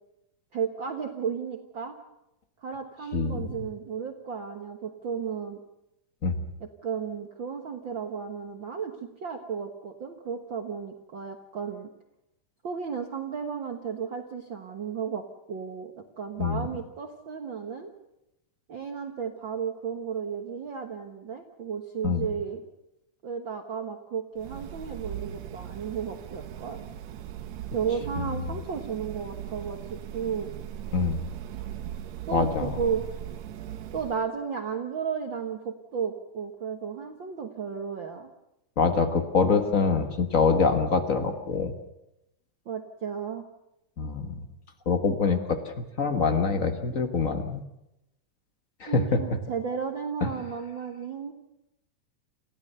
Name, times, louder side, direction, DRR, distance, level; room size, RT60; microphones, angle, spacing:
voice 1, 0.5-2.0 2.6-5.6 6.6-11.9 12.6-17.9 18.7-22.6 23.2-26.8 27.7-30.5 32.3-33.0 33.9-38.3 42.6-43.5 48.9-51.3, right 6 dB, 50° right, 4 dB, 1.6 m, -34 dB
voice 2, 3.1-3.5 6.2-6.3 16.4-16.6 22.0-22.3 30.9-31.2 32.3-32.7 38.8-41.7 44.0-44.3 44.8-47.6 48.8-49.2 50.2-50.3, left 4 dB, 50° left, 7 dB, 0.9 m, -25 dB
sound 1, 24.4-34.2, right 11 dB, 65° right, 2.0 m, -39 dB
29.0 x 15.5 x 6.8 m, 0.87 s
omnidirectional pair, 3.7 m